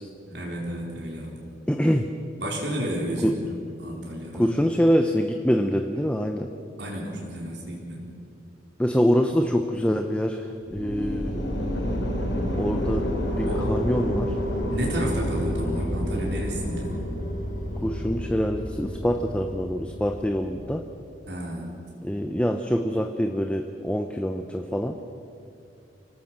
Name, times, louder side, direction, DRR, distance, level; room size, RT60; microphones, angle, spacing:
voice 1, 0.2-1.4 2.4-4.5 6.8-8.1 13.5-13.7 14.7-17.0 21.3-21.7, equal, 65° right, -2 dB, 4.1 m, -31 dB
voice 2, 1.7-2.1 3.2-3.4 4.3-6.5 8.8-11.5 12.6-14.4 17.8-20.8 22.0-25.0, equal, 5° left, 5 dB, 0.8 m, -25 dB
sound 1, 10.6-20.6, equal, 85° left, 5.1 m, -29 dB
25.5 x 18.0 x 7.5 m, 2.6 s
head